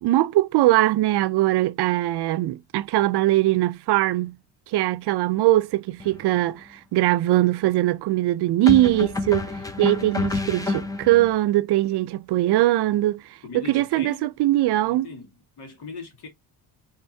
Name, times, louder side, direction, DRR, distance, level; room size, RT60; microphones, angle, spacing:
voice 1, 0.0-4.4 4.7-9.5 9.8-13.2 13.5-15.1, right 16 dB, 75° right, 0.5 m, -21 dB
sound 1, 6.0-6.2 8.7-11.3, left 3 dB, 10° left, 0.5 m, -28 dB
voice 2, 13.4-14.3 14.8-16.3, left 4 dB, 75° left, 2.2 m, -40 dB
5.5 x 3.6 x 2.7 m
cardioid pair, 170°, 40 cm